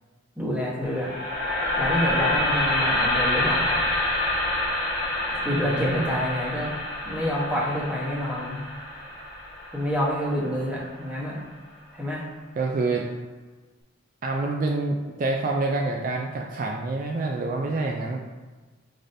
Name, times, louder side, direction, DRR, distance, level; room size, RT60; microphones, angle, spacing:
voice 1, 0.4-1.1 1.8-3.8 5.3-6.7 7.0-8.6 9.7-11.4 11.9-12.2, equal, 5° right, -5 dB, 1.0 m, -28 dB
sound 1, 0.8-10.9, left 1 dB, 50° left, 1.2 m, -27 dB
voice 2, 5.4-6.2 12.6-13.1 14.2-18.2, right 3 dB, 45° right, 0 dB, 0.3 m, -27 dB
4.9 x 3.9 x 2.6 m, 1.3 s
head